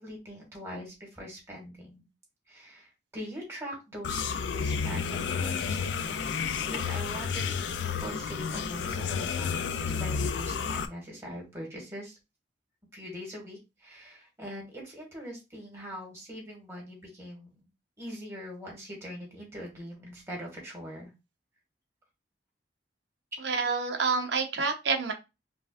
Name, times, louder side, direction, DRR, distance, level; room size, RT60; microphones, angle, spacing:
voice 1, 0.0-2.0 2.5-6.2 6.7-12.2 12.9-17.7 18.0-21.1, equal, 15° right, -2 dB, 1.7 m, -42 dB
sound 1, 4.0-10.9, left 6 dB, 85° left, 0.4 m, -31 dB
voice 2, 23.4-25.1, right 4 dB, 75° right, 4 dB, 0.8 m, -28 dB
5.2 x 2.4 x 2.5 m, 0.25 s
head